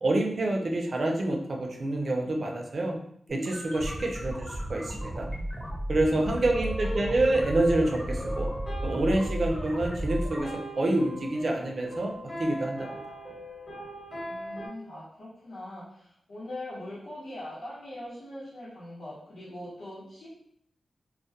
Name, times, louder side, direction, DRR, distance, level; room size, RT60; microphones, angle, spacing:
voice 1, 0.0-3.0 3.3-5.3 5.9-8.5 8.8-10.5 10.8-12.1 12.4-13.0, right 2 dB, 50° right, 1 dB, 0.4 m, -27 dB
sound 1, 3.3-10.4, equal, 5° left, 0.6 m, -34 dB
voice 2, 4.0-4.3 6.2-6.9 14.2-20.3, left 1 dB, 80° left, -11 dB, 0.9 m, -42 dB
sound 2, 6.6-14.7, equal, 20° left, 0.9 m, -39 dB
2.2 x 2.1 x 2.7 m, 0.69 s
wide cardioid pair, 115°, 0 cm